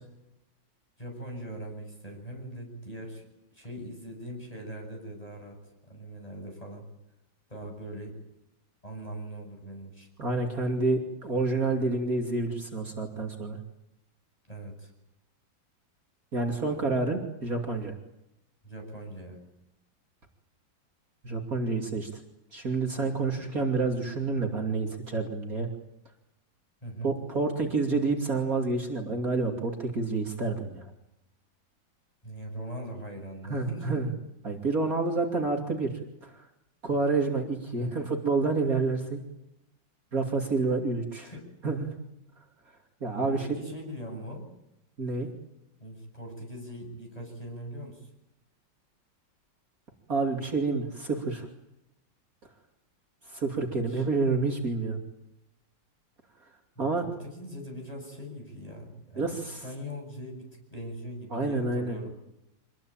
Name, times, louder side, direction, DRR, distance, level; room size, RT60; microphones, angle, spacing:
voice 1, 1.0-3.3 3.5-6.9 7.5-8.1 8.8-10.1 14.5-14.9 18.6-19.4 23.4-23.5 26.8-27.2 32.2-34.1 37.7-38.1 41.2-41.5 43.2-44.5 45.8-48.1 53.7-54.0 56.8-62.2, equal, 20° left, 2 dB, 7.9 m, -41 dB
voice 2, 10.2-13.6 16.3-17.9 21.2-22.1 22.5-25.7 27.0-30.9 33.5-34.1 34.4-35.9 36.2-36.4 36.8-39.2 40.1-41.3 41.6-41.9 43.0-43.5 45.0-45.3 50.1-51.5 53.3-55.0 56.8-57.0 59.2-59.6 61.3-62.0, right 3 dB, 45° right, 2 dB, 3.2 m, -28 dB
26.0 x 20.5 x 8.9 m, 0.86 s
omnidirectional pair, 2.1 m